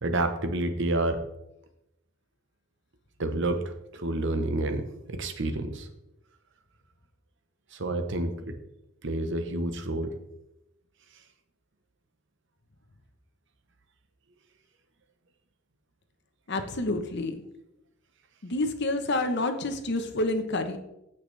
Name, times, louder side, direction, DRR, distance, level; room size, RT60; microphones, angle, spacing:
voice 1, 0.0-1.2 3.2-5.9 7.7-8.5 9.0-10.1, right 2 dB, 65° right, 8 dB, 1.0 m, -29 dB
voice 2, 16.5-17.4 18.4-20.8, left 2 dB, 60° left, 7 dB, 1.1 m, -28 dB
15.5 x 5.9 x 3.4 m, 0.88 s
head